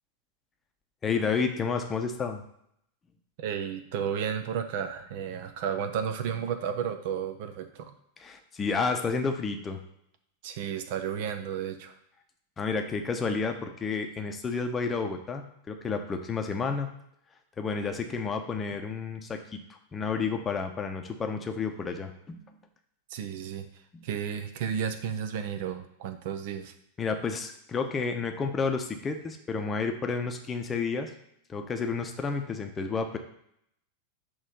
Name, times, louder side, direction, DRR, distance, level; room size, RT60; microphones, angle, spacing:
voice 1, 1.0-2.4 8.2-9.8 12.6-16.9 17.6-19.6 19.9-22.4 23.9-24.1 27.0-31.1 31.5-33.2, left 5 dB, 20° left, 5 dB, 0.8 m, -31 dB
voice 2, 3.4-7.9 10.4-11.9 23.1-23.7 24.0-26.7, right 8 dB, 50° right, 8 dB, 0.6 m, -32 dB
6.3 x 3.1 x 5.3 m, 0.73 s
figure-of-eight pair, 90°, 0 cm